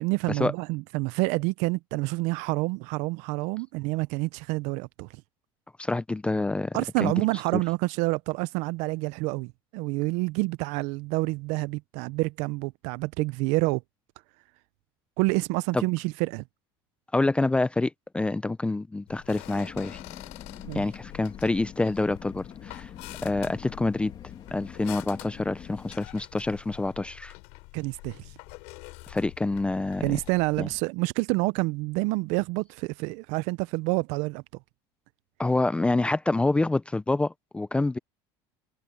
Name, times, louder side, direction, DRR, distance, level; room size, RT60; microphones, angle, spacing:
voice 1, 0.0-5.2 6.7-13.8 15.2-16.4 20.6-20.8 27.7-28.3 30.0-34.4, right 24 dB, 65° right, 0.5 m, -28 dB
voice 2, 5.8-7.1 7.5-7.6 15.7-15.8 17.1-20.0 20.7-22.9 23.2-24.1 24.5-27.3 29.1-30.1 30.6-30.7 35.4-38.0, left 2 dB, 10° left, 0.5 m, -27 dB
sound 1, 19.1-30.8, left 27 dB, 75° left, 3.5 m, -46 dB
sound 2, 19.4-26.0, left 8 dB, 35° left, 2.4 m, -45 dB
supercardioid pair, 120°, 12 cm